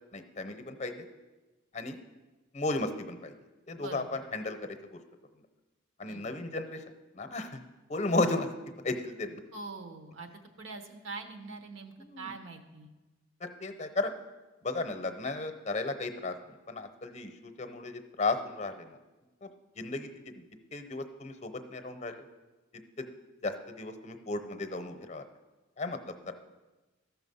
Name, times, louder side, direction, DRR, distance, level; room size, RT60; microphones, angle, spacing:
voice 1, 0.1-1.1 1.7-2.0 2.5-3.3 3.7-5.0 6.0-6.8 7.1-7.6 7.9-8.5 8.8-9.4 12.0-12.3 13.4-14.1 14.6-19.0 19.4-19.5 19.8-20.4 20.7-22.2 23.0-23.1 23.4-25.2 25.8-26.3, left 2 dB, 35° left, 7 dB, 0.7 m, -34 dB
voice 2, 6.0-6.4 9.5-10.3 10.6-12.9, right 3 dB, 70° right, 6 dB, 1.1 m, -43 dB
13.5 x 5.9 x 5.5 m, 1.2 s
head